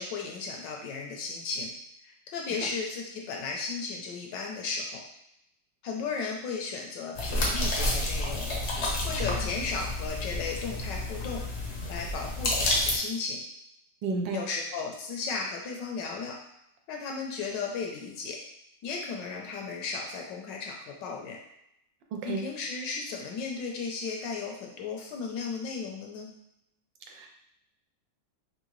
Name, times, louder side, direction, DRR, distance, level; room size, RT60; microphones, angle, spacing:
voice 1, 0.0-1.7 2.0-5.0 5.8-8.5 9.0-11.4 11.9-13.4 14.3-16.4 16.9-18.4 18.8-21.4 22.2-26.3, left 4 dB, 75° left, 0 dB, 1.3 m, -35 dB
sound 1, 7.1-13.0, left 1 dB, 55° left, 0.8 m, -30 dB
voice 2, 14.0-14.4 22.1-22.4 27.1-27.3, right 3 dB, 75° right, 2 dB, 1.3 m, -31 dB
3.7 x 2.8 x 3.1 m, 0.78 s
omnidirectional pair, 2.0 m